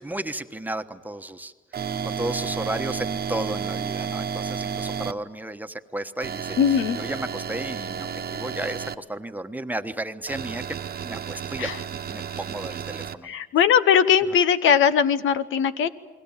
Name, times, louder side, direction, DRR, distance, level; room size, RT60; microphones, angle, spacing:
voice 1, 0.0-1.5 2.0-6.6 6.9-10.8 11.0-13.3, right 1 dB, 10° right, 8 dB, 1.2 m, -33 dB
sound 1, 1.7-5.1 6.2-8.9 10.3-13.1, right 7 dB, 55° right, 1.2 m, -32 dB
voice 2, 6.6-7.0 11.6-11.8 13.2-15.9, left 8 dB, 80° left, 12 dB, 1.0 m, -20 dB
29.5 x 21.5 x 7.3 m, 1.4 s
cardioid pair, 90°, 20 cm